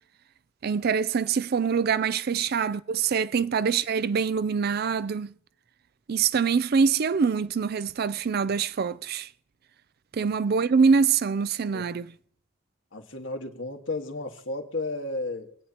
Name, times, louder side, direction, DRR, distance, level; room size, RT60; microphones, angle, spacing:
voice 1, 0.6-5.3 6.1-9.3 10.1-12.1, right 6 dB, 50° right, 0.4 m, -24 dB
voice 2, 12.9-15.6, left 2 dB, 70° left, 1.7 m, -33 dB
28.0 x 9.4 x 2.9 m
head